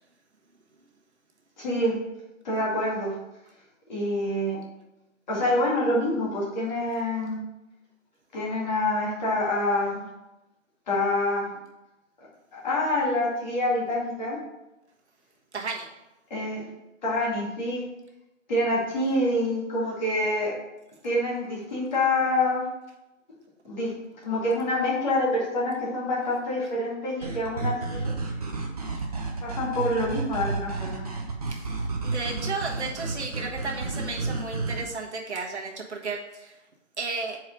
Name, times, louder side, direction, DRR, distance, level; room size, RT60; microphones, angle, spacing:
voice 1, 1.6-2.0 2.4-3.1 3.9-4.6 5.3-7.4 8.3-10.0 10.9-11.5 12.5-14.4 16.3-16.7 17.0-17.8 18.5-20.5 21.0-22.6 23.6-23.9 24.2-28.1 29.4-31.1, left 1 dB, 35° left, -5 dB, 2.2 m, -26 dB
voice 2, 15.5-15.9 31.5-36.6 37.0-37.4, right 4 dB, 60° right, -1 dB, 1.5 m, -34 dB
sound 1, 27.2-34.8, right 3 dB, 30° right, 0.7 m, -31 dB
4.8 x 4.7 x 6.1 m, 0.97 s
hypercardioid pair, 160°, 38 cm